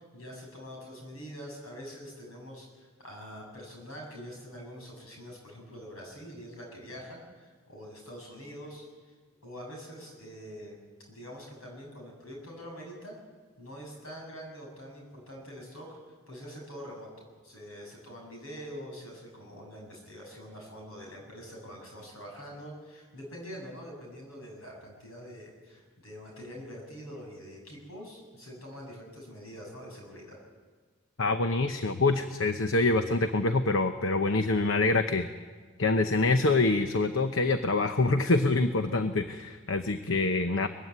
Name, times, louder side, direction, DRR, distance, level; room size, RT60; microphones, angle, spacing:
voice 1, 0.0-8.9 9.4-10.8 11.1-13.2 13.6-16.0 16.3-30.4, equal, 85° left, 0 dB, 7.7 m, -45 dB
voice 2, 31.2-35.3 35.8-40.7, left 3 dB, 65° left, 8 dB, 0.9 m, -25 dB
21.5 x 15.5 x 9.6 m, 1.5 s
head